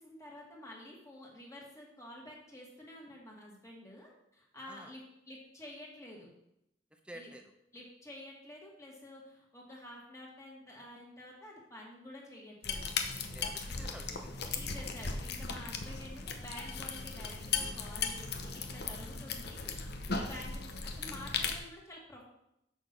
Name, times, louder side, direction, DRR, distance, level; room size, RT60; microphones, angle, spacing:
voice 1, 0.0-6.3 7.1-7.3 7.7-12.8 14.5-22.2, left 1 dB, 15° left, -2 dB, 1.9 m, -50 dB
voice 2, 6.9-7.5 13.3-14.7 20.3-20.5, right 1 dB, 5° right, 5 dB, 0.8 m, -51 dB
sound 1, 12.6-21.6, left 5 dB, 60° left, 0.8 m, -37 dB
6.5 x 6.2 x 5.3 m, 0.81 s
head